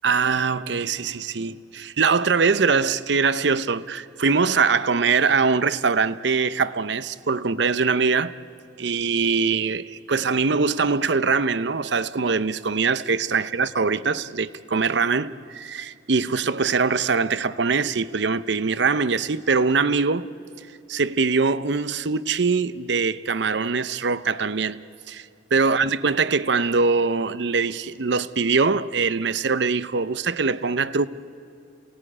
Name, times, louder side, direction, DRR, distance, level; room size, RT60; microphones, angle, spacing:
voice 1, 0.0-8.3 8.8-20.3 20.9-24.8 25.1-25.3 25.5-31.1, right 4 dB, 60° right, 0.7 m, -22 dB
28.5 x 18.0 x 9.9 m
head